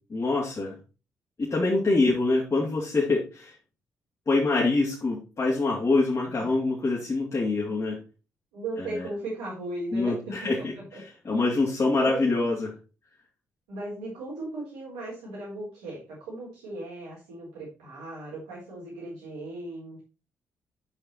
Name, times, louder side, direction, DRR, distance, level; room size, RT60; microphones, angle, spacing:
voice 1, 0.1-0.8 1.4-3.5 4.3-8.0 8.8-9.1 9.9-10.7 11.2-12.7, left 3 dB, 45° left, -4 dB, 3.1 m, -25 dB
voice 2, 8.5-10.7 10.9-11.0 11.5-11.6 12.0-12.5 13.7-20.0, right 2 dB, 85° right, -7 dB, 4.1 m, -37 dB
9.7 x 5.6 x 4.4 m, 0.32 s
hypercardioid pair, 40°, 7 cm